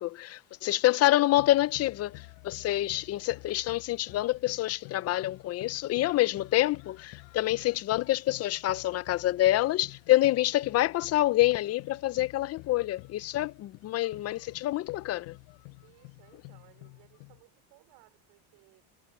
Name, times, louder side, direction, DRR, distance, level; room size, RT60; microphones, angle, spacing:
voice 1, 0.0-15.4, left 15 dB, 35° left, 0.5 m, -27 dB
sound 1, 1.3-17.4, left 40 dB or more, 85° left, 6.5 m, -50 dB
voice 2, 15.8-18.8, right 22 dB, 70° right, 5.2 m, -61 dB
cardioid pair, 140°, 43 cm